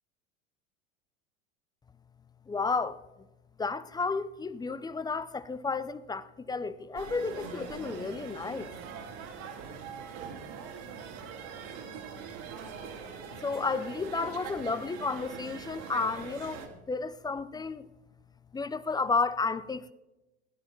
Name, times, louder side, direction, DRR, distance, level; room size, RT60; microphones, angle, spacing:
voice 1, 2.5-3.0 3.6-8.7 13.4-17.9 18.5-19.9, left 4 dB, 10° left, 0.5 m, -32 dB
sound 1, 6.9-16.7, right 6 dB, 60° right, 2.4 m, -42 dB
17.0 x 9.8 x 4.5 m
hypercardioid pair, 95°, 34 cm